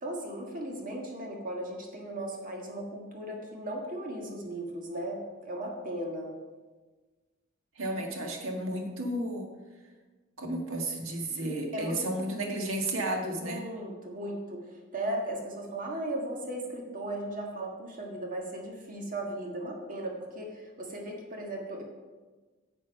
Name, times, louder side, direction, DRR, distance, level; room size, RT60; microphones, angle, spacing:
voice 1, 0.0-6.4 11.7-12.0 13.4-21.8, right 1 dB, 40° right, 1 dB, 1.6 m, -37 dB
voice 2, 7.7-9.5 10.4-13.6, right 1 dB, 70° right, 2 dB, 1.7 m, -32 dB
10.0 x 7.2 x 5.2 m, 1.3 s
head